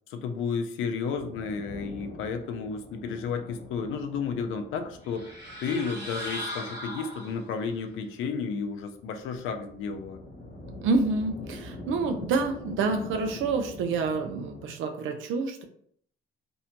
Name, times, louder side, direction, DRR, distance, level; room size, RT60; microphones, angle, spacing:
voice 1, 0.1-5.3 5.6-10.2, left 5 dB, 85° left, 7 dB, 0.4 m, -32 dB
sound 1, 1.1-14.7, left 1 dB, 45° left, 0.9 m, -45 dB
sound 2, 5.0-7.7, equal, 20° right, 1.2 m, -38 dB
voice 2, 10.8-15.6, right 4 dB, 85° right, 5 dB, 0.5 m, -28 dB
2.6 x 2.1 x 2.8 m, 0.62 s
cardioid pair, 90°, 20 cm